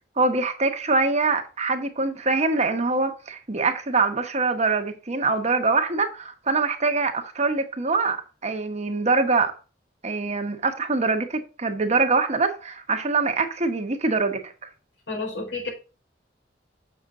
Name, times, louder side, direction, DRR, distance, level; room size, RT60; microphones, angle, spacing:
voice 1, 0.2-9.5 10.0-14.7, right 3 dB, 40° right, 1.1 m, -24 dB
voice 2, 15.1-15.7, left 3 dB, 80° left, 4.4 m, -30 dB
7.2 x 6.8 x 3.6 m
head